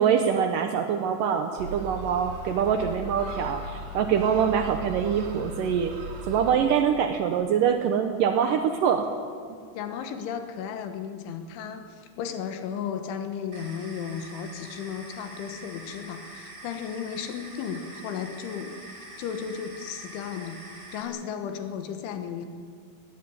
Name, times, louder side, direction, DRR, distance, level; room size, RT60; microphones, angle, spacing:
voice 1, 0.0-6.0 6.3-9.1, right 7 dB, 80° right, 6 dB, 1.9 m, -24 dB
sound 1, 1.6-6.6, right 2 dB, 55° right, 3.9 m, -38 dB
voice 2, 9.8-18.9 19.2-22.5, left 7 dB, 85° left, 7 dB, 3.8 m, -35 dB
sound 2, 13.5-21.0, right 2 dB, 20° right, 3.6 m, -45 dB
19.5 x 18.0 x 9.6 m, 2.2 s
omnidirectional pair, 5.4 m